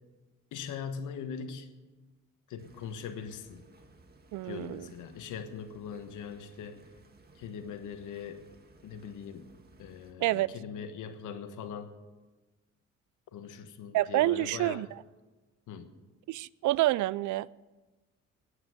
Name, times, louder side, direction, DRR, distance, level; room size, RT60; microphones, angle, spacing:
voice 1, 0.5-1.7 2.5-3.6 4.4-6.8 7.4-8.4 8.8-9.5 9.8-11.9 13.3-14.9 15.7-15.9, left 7 dB, 80° left, 1.4 m, -41 dB
sound 1, 2.6-10.1, right 2 dB, 30° right, 1.8 m, -59 dB
voice 2, 4.3-4.9 10.2-10.5 13.9-14.9 16.3-17.5, right 17 dB, 75° right, 0.4 m, -28 dB
9.7 x 9.1 x 9.3 m
cardioid pair, 90°, 30 cm